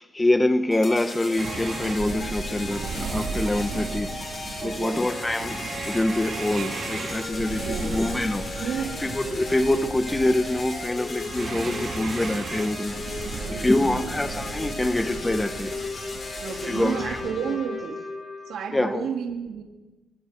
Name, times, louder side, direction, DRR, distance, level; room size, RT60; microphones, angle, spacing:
voice 1, 0.0-4.1 4.6-12.9 13.2-15.7 16.6-17.2 18.7-19.1, left 1 dB, 15° left, 1.2 m, -25 dB
sound 1, 0.7-18.7, left 2 dB, 40° left, 7.8 m, -35 dB
sound 2, 1.4-17.2, right 4 dB, 55° right, 3.9 m, -35 dB
voice 2, 4.6-5.0 7.6-8.0 8.6-8.9 13.3-14.2 16.4-18.0 18.5-19.6, right 7 dB, 75° right, 3.2 m, -32 dB
25.0 x 23.5 x 4.6 m
cardioid pair, 90°, 0 cm